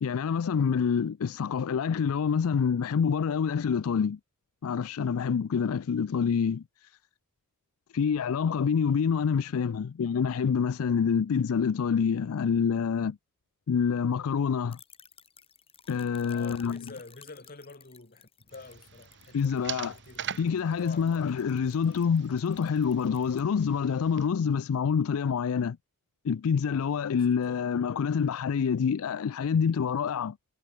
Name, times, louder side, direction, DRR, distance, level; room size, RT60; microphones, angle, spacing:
voice 1, 0.0-4.2 4.6-6.9 7.9-13.2 13.7-14.8 15.9-16.9 19.3-20.0 20.4-25.8 26.2-30.4, left 6 dB, 70° left, 0.4 m, -27 dB
sound 1, 14.7-23.4, left 7 dB, 25° left, 6.4 m, -57 dB
voice 2, 16.2-21.5 27.1-27.7, left 3 dB, 40° left, 2.4 m, -48 dB
sound 2, 18.5-24.3, right 9 dB, 55° right, 1.8 m, -43 dB
head